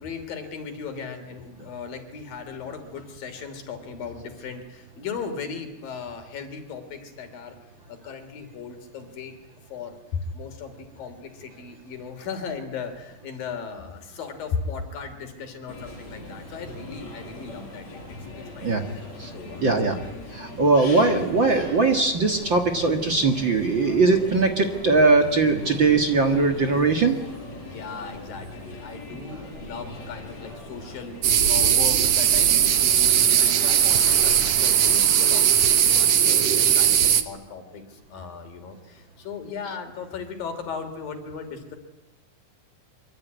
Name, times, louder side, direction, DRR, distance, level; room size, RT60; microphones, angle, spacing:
voice 1, 0.0-7.6 7.9-9.3 9.7-18.8 19.3-20.0 27.6-41.8, left 5 dB, 75° left, 7 dB, 4.7 m, -37 dB
sound 1, 15.7-35.1, left 2 dB, 50° left, 7.0 m, -40 dB
voice 2, 19.6-20.0 20.3-27.1, right 3 dB, 40° right, 5 dB, 2.0 m, -20 dB
sound 2, 31.2-37.2, right 9 dB, 55° right, 2.0 m, -19 dB
25.0 x 24.5 x 9.5 m, 1.0 s
omnidirectional pair, 4.0 m